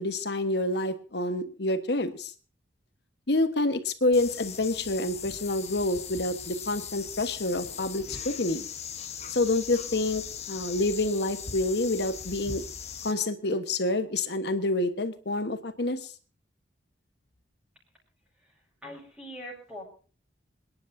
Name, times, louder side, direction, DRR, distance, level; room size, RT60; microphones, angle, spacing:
voice 1, 0.0-2.3 3.3-8.7 9.3-12.6 13.0-16.1, left 2 dB, 60° left, 10 dB, 1.3 m, -28 dB
sound 1, 4.1-13.1, left 7 dB, 35° left, 1.1 m, -39 dB
voice 2, 18.8-19.8, equal, 5° right, -5 dB, 5.6 m, -42 dB
27.5 x 10.5 x 2.7 m, 0.39 s
head